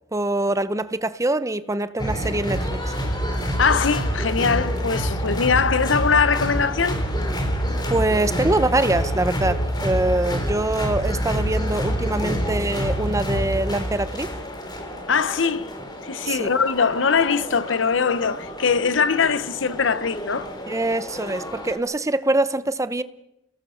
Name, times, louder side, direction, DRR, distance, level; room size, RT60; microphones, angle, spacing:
voice 1, 0.1-2.9 7.9-14.3 16.3-16.5 20.7-23.0, right 2 dB, 15° right, 0.8 m, -24 dB
sound 1, 2.0-21.8, equal, 20° left, 3.5 m, -27 dB
voice 2, 3.6-7.0 15.1-15.7 16.0-20.5, left 5 dB, 85° left, 0.9 m, -21 dB
29.0 x 18.5 x 6.4 m
head